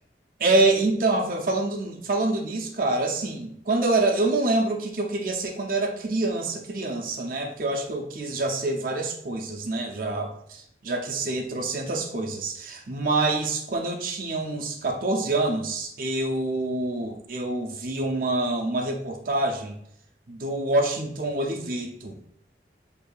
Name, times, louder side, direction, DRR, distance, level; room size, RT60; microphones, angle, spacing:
voice 1, 0.4-19.8 20.3-22.2, right 2 dB, 50° right, 2 dB, 0.5 m, -26 dB
6.5 x 2.6 x 2.3 m, 0.72 s
head